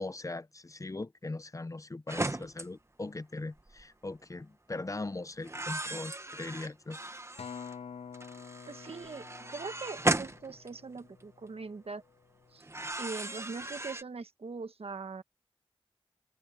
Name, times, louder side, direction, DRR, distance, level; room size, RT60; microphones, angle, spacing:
voice 1, 0.0-7.0, left 2 dB, 35° left, 0.6 m, -40 dB
sound 1, 2.1-2.7 3.6-3.8 5.4-7.7 8.1-11.2 12.6-14.0, right 2 dB, 25° right, 1.2 m, -36 dB
Acoustic guitar, 7.4-11.8 12.4-12.6, left 6 dB, 90° left, 0.5 m, -48 dB
voice 2, 8.7-12.0 12.5-12.6 13.0-15.2, right 4 dB, 75° right, 1.3 m, -41 dB
wide cardioid pair, 55°, 10 cm